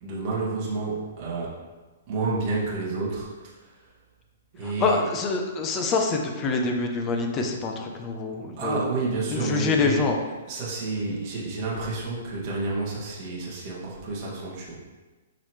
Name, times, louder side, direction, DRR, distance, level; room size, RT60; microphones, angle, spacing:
voice 1, 0.0-1.5 2.1-3.7 4.5-5.0 8.6-10.0 10.5-14.8, right 3 dB, 30° right, -6 dB, 2.2 m, -30 dB
voice 2, 4.6-8.9 9.3-10.2, left 4 dB, 20° left, 3 dB, 0.7 m, -26 dB
12.0 x 4.1 x 3.2 m, 1.3 s
hypercardioid pair, 170°, 0 cm